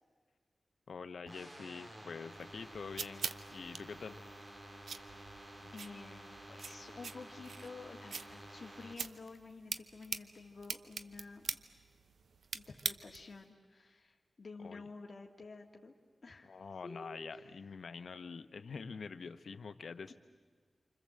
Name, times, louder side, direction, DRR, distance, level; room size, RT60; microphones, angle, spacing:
voice 1, 0.9-4.2 14.6-14.8 16.4-20.1, left 5 dB, 80° left, 11 dB, 1.0 m, -46 dB
sound 1, 1.3-8.9, right 1 dB, 35° right, 3.4 m, -52 dB
sound 2, 2.4-13.4, right 5 dB, 85° right, 0.7 m, -45 dB
voice 2, 5.6-11.5 12.5-15.9 16.2-16.6 16.8-17.6 20.1-20.2, left 3 dB, 55° left, 1 dB, 1.8 m, -51 dB
28.5 x 25.0 x 7.7 m, 1.5 s
cardioid pair, 60°, 0 cm